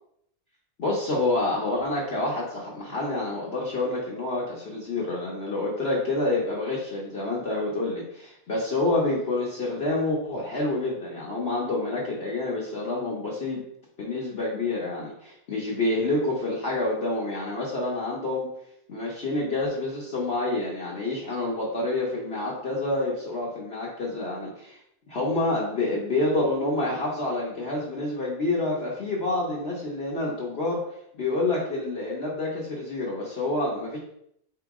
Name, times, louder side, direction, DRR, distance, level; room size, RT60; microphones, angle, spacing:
voice 1, 0.8-13.6 14.0-18.5 18.9-24.8 25.1-30.8 31.2-34.0, left 2 dB, 50° left, -4 dB, 0.9 m, -28 dB
4.3 x 2.9 x 3.5 m, 0.74 s
omnidirectional pair, 1.6 m